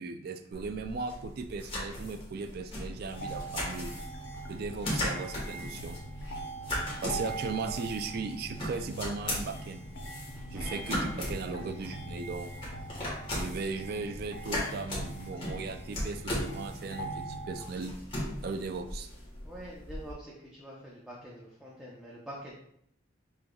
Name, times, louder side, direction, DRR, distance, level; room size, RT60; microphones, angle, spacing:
voice 1, 0.0-3.9 4.5-6.0 7.0-9.8 10.5-12.5 13.3-18.0 18.4-19.1, right 4 dB, 50° right, 7 dB, 0.3 m, -37 dB
sound 1, 0.5-20.1, left 1 dB, 25° left, 1.4 m, -38 dB
sound 2, 3.1-17.6, right 2 dB, 65° left, 0.7 m, -42 dB
voice 2, 10.5-11.2 19.4-22.5, equal, 5° right, -6 dB, 0.7 m, -45 dB
6.0 x 3.3 x 2.3 m, 0.70 s
head